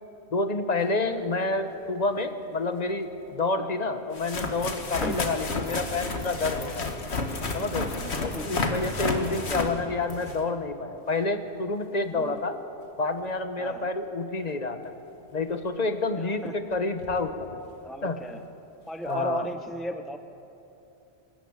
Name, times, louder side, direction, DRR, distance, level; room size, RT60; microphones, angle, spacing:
voice 1, 0.3-6.9 7.5-7.9 8.2-12.6 13.0-14.9 15.3-17.6 18.0-18.2 19.0-19.5, left 3 dB, 40° left, 8 dB, 1.2 m, -29 dB
sound 1, 2.0-2.1 3.3-3.4 4.1-10.5 15.6-15.7 16.7-16.8 17.0-17.2 19.1-19.2, left 3 dB, 80° left, 1.9 m, -31 dB
voice 2, 4.9-5.2 8.0-8.5 12.1-12.4 13.6-13.9 16.2-16.6 17.8-18.4 18.9-20.2, equal, ahead, 7 dB, 0.6 m, -35 dB
24.5 x 14.0 x 8.9 m, 2.9 s
omnidirectional pair, 1.1 m